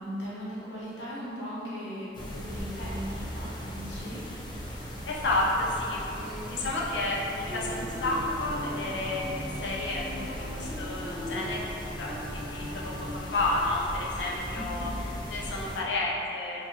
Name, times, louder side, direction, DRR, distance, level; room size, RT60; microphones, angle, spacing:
voice 1, 0.0-4.2 14.5-14.9, equal, 90° left, -8 dB, 1.1 m, -38 dB
sound 1, 2.1-15.8, equal, 25° left, 0.5 m, -38 dB
voice 2, 5.1-11.7 12.0-16.7, left 2 dB, 70° left, -4 dB, 0.6 m, -31 dB
sound 2, 7.5-13.1, left 1 dB, 65° right, 1.0 m, -40 dB
4.6 x 2.5 x 2.8 m, 2.9 s
head